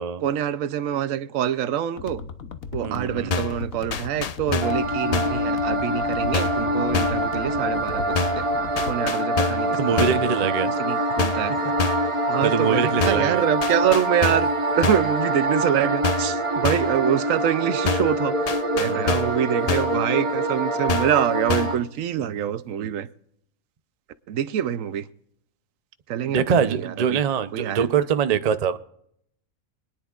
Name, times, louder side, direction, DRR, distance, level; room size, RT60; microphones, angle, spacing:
voice 1, 0.2-2.2 2.7-8.4 8.9-11.6 12.3-14.5 14.8-18.4 18.7-23.1 24.3-25.1 26.1-27.2 27.5-27.9, right 10 dB, 75° right, 1.0 m, -25 dB
sound 1, 2.0-9.0, left 5 dB, 90° left, 1.3 m, -37 dB
voice 2, 2.8-3.3 9.8-10.7 11.5-11.6 12.4-13.4 18.8-19.1 22.2-22.3 22.8-22.9 26.3-28.8, right 7 dB, 50° right, 0.5 m, -23 dB
sound 2, 3.3-3.6 3.9-4.8 5.1-5.4 6.3-6.7 6.9-7.3 8.2-8.5 8.8-9.7 10.0-10.3 11.2-11.5 11.8-12.1 13.0-13.3 13.6-14.5 14.8-15.1 16.0-16.4 16.6-17.0 17.9-18.2 18.5-19.4 19.7-20.0 20.9-21.2 21.5-21.8, left 4 dB, 55° left, 0.4 m, -26 dB
sound 3, 4.6-21.8, right 1 dB, 25° right, 1.1 m, -25 dB
25.0 x 10.0 x 2.4 m
omnidirectional pair, 1.4 m